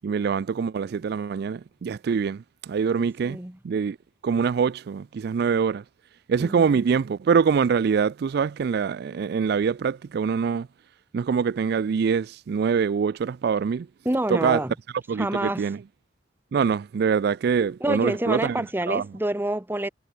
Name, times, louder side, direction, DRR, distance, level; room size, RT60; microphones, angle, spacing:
voice 1, 0.0-3.4 3.6-4.0 4.2-5.8 6.3-10.7 11.1-13.9 14.3-14.6 15.1-15.8 16.5-19.0, right 6 dB, 60° right, 0.3 m, -24 dB
voice 2, 3.0-3.6 6.4-6.8 14.0-14.7 15.2-15.7 17.8-19.9, right 1 dB, 10° right, 0.9 m, -27 dB
head